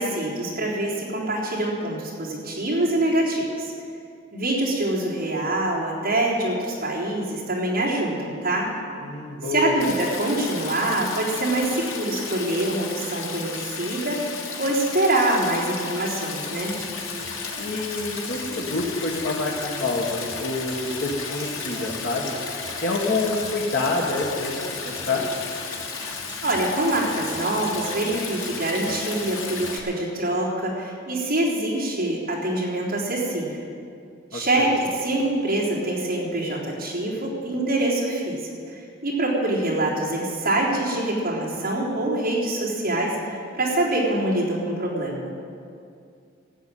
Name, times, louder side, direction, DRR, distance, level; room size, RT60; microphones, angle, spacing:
voice 1, 0.0-3.7 4.3-8.7 9.4-16.8 26.4-33.6 34.3-45.3, right 1 dB, 50° right, -5 dB, 3.8 m, -25 dB
voice 2, 9.0-9.7 17.6-22.4 22.8-25.3 34.3-34.7, left 2 dB, 60° left, -2 dB, 1.6 m, -27 dB
Stream, 9.8-29.8, left 5 dB, 85° left, 1.9 m, -34 dB
sound 1, 16.5-29.8, right 1 dB, 25° right, 1.9 m, -42 dB
14.0 x 8.1 x 9.1 m, 2.4 s
head